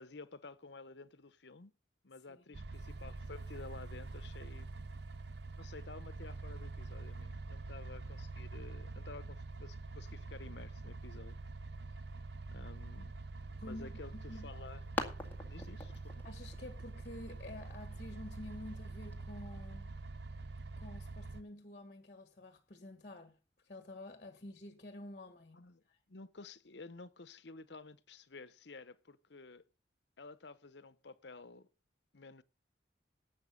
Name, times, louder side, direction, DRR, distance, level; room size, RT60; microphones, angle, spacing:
voice 1, 0.0-1.7 2.0-4.8 5.6-11.4 12.5-13.2 13.6-14.8 15.5-16.2 25.5-29.6 30.2-31.7 32.1-32.4, left 3 dB, 70° left, 0.9 m, -52 dB
sound 1, 2.5-21.4, right 3 dB, 65° right, 0.8 m, -46 dB
voice 2, 13.6-14.5 16.2-19.9 20.8-23.4 23.6-25.6 25.9-26.0, left 1 dB, 45° left, 1.5 m, -49 dB
sound 2, 14.0-19.2, left 2 dB, 10° left, 2.0 m, -46 dB
11.5 x 7.8 x 6.6 m
head